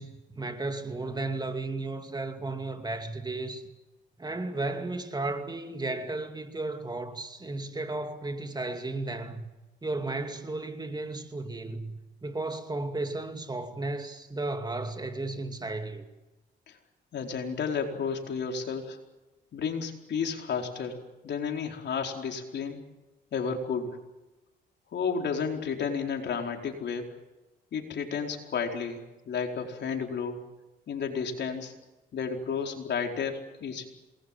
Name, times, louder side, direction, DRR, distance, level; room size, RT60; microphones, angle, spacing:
voice 1, 0.0-3.6 4.2-9.5 9.8-11.9 12.2-16.0, right 2 dB, 20° right, 2.6 m, -34 dB
voice 2, 17.1-19.0 19.5-21.0 21.2-22.8 23.3-24.0 24.9-27.1 27.7-29.0 29.3-30.4 30.9-31.7 32.1-33.9, left 6 dB, 60° left, 4.5 m, -32 dB
27.5 x 20.5 x 7.6 m
cardioid pair, 90°, 20 cm